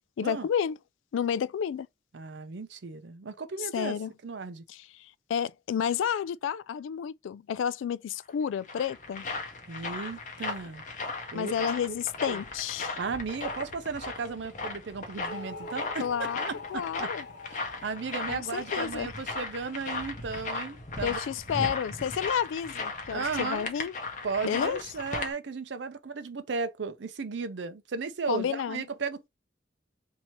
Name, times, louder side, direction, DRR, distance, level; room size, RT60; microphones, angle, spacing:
voice 1, 0.2-0.8 1.1-1.9 3.7-4.1 4.7-9.3 11.3-13.0 16.0-17.2 18.3-19.1 21.0-23.9 24.4-24.8 28.3-28.8, left 8 dB, 90° left, 0.3 m, -31 dB
voice 2, 2.1-4.0 4.2-4.6 9.7-10.8 11.3-11.5 11.9-12.0 12.2-12.4 13.0-17.1 17.5-21.2 23.1-23.7 24.2-29.3, right 4 dB, 70° right, 0.6 m, -35 dB
sound 1, 8.3-25.3, left 3 dB, 40° left, 0.8 m, -37 dB
sound 2, 15.2-19.5, left 2 dB, 65° left, 1.1 m, -44 dB
2.9 x 2.8 x 4.4 m
head